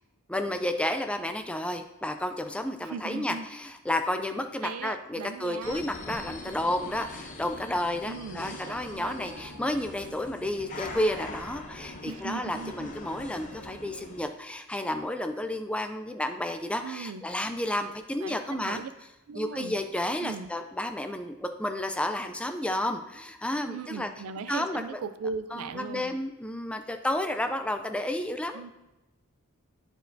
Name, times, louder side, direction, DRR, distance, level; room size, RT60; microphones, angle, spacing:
voice 1, 0.3-18.8 19.3-24.1 24.5-25.0 25.5-28.6, left 1 dB, 5° left, 7 dB, 0.3 m, -31 dB
voice 2, 2.8-3.5 4.6-5.8 8.1-9.1 12.0-12.9 16.8-17.2 18.2-18.9 19.3-19.7 20.2-20.5 23.7-26.1 28.5-28.7, right 5 dB, 80° right, 12 dB, 0.4 m, -38 dB
sound 1, 5.6-14.2, left 2 dB, 35° left, 0.7 m, -42 dB
10.0 x 4.4 x 2.6 m, 0.99 s
head